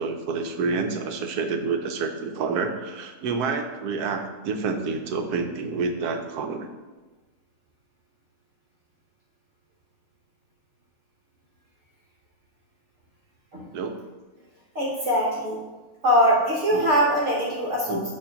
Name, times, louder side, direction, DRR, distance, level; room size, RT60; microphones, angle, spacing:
voice 1, 0.0-6.7 13.7-14.0 16.7-16.8 17.9-18.1, right 4 dB, 80° right, 6 dB, 1.2 m, -28 dB
voice 2, 14.7-15.6 16.0-18.1, equal, 55° right, -3 dB, 1.2 m, -22 dB
7.1 x 3.0 x 5.0 m, 1.2 s
omnidirectional pair, 1.6 m